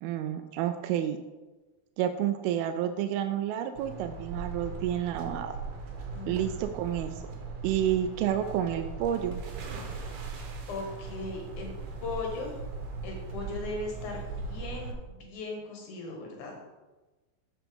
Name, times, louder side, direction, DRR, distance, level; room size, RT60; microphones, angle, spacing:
voice 1, 0.0-1.2 2.0-5.6 6.3-7.1 7.6-9.4, right 10 dB, 85° right, 8 dB, 2.4 m, -29 dB
sound 1, 3.8-14.9, right 4 dB, 65° right, 2.4 m, -39 dB
voice 2, 6.1-6.5 10.7-11.7 12.0-12.5 13.0-16.6, left 3 dB, 60° left, 1 dB, 2.7 m, -38 dB
7.7 x 6.4 x 5.1 m, 1.2 s
omnidirectional pair, 4.2 m